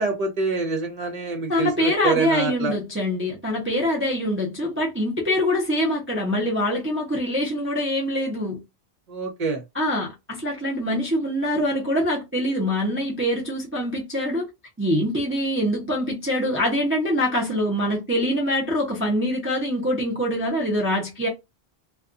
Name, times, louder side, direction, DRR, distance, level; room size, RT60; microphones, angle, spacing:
voice 1, 0.0-2.7 9.1-9.6, right 3 dB, 35° right, 1.0 m, -26 dB
voice 2, 1.5-8.6 9.7-14.5 14.8-21.3, equal, 15° right, 0.6 m, -24 dB
2.4 x 2.3 x 2.5 m
omnidirectional pair, 1.2 m